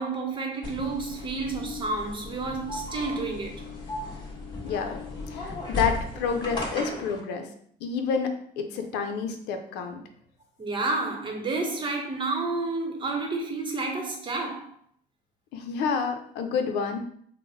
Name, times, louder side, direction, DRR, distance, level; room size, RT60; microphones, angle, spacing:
voice 1, 0.0-3.6 5.4-5.5 10.6-14.7, right 3 dB, 30° right, 0.9 m, -30 dB
sound 1, 0.6-7.2, left 2 dB, 25° left, 1.5 m, -36 dB
voice 2, 4.6-4.9 5.3-7.5 7.8-10.0 15.5-17.0, left 6 dB, 85° left, 0.6 m, -29 dB
3.7 x 2.1 x 4.0 m
cardioid pair, 110°, 17 cm